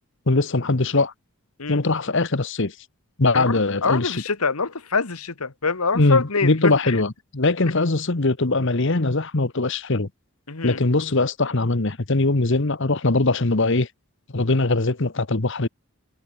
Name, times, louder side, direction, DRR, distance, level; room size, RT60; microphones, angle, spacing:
voice 1, 0.3-1.1 1.7-2.7 3.2-4.2 5.9-10.1 10.6-13.9 14.3-15.7, left 2 dB, 55° left, 1.2 m, -21 dB
voice 2, 3.3-7.0 10.5-10.8, left 4 dB, 85° left, 1.7 m, -25 dB
head